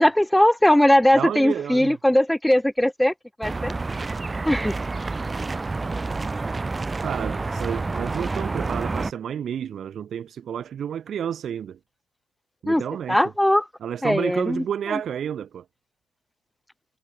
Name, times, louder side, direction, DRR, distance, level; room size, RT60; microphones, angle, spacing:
voice 1, 0.0-3.1 3.4-3.7 4.5-4.7 12.7-12.8 13.1-13.6 14.0-14.6 14.9-15.0, left 1 dB, 5° left, 2.7 m, -19 dB
voice 2, 1.1-2.0 7.0-11.8 12.6-13.2 13.8-15.6, right 9 dB, 50° right, 2.9 m, -30 dB
sound 1, 3.4-9.1, right 3 dB, 25° right, 4.3 m, -28 dB
figure-of-eight pair, 45°, 0 cm